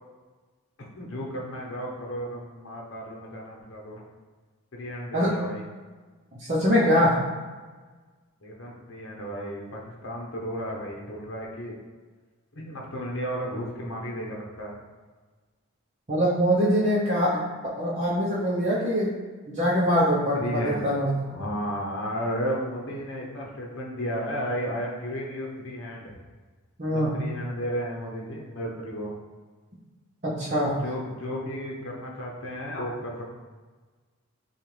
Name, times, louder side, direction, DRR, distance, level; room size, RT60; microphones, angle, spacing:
voice 1, 0.9-4.0 4.7-5.6 8.4-11.8 12.5-14.8 20.3-20.8 21.2-26.1 26.8-29.1 30.7-33.4, equal, 60° left, -1 dB, 0.9 m, -33 dB
voice 2, 6.4-7.2 16.1-17.4 17.8-19.1 19.5-21.1 26.8-27.1 30.2-30.7, equal, 35° right, -8 dB, 0.7 m, -23 dB
6.3 x 2.4 x 3.2 m, 1.4 s
head